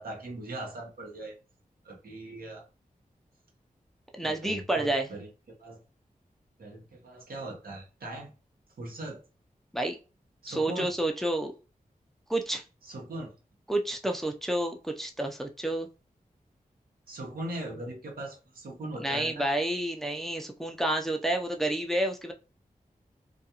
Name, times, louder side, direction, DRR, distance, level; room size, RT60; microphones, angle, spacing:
voice 1, 0.0-1.3 1.8-2.6 4.2-5.3 5.6-5.8 6.6-8.3 8.8-9.2 10.4-10.9 12.8-13.3 17.1-19.5, right 1 dB, 80° right, 0 dB, 0.9 m, -39 dB
voice 2, 4.1-5.1 9.7-10.0 10.5-11.5 12.3-12.6 13.7-15.9 19.0-22.3, right 1 dB, ahead, 3 dB, 0.5 m, -29 dB
2.3 x 2.3 x 2.8 m, 0.32 s
cardioid pair, 50°, 15 cm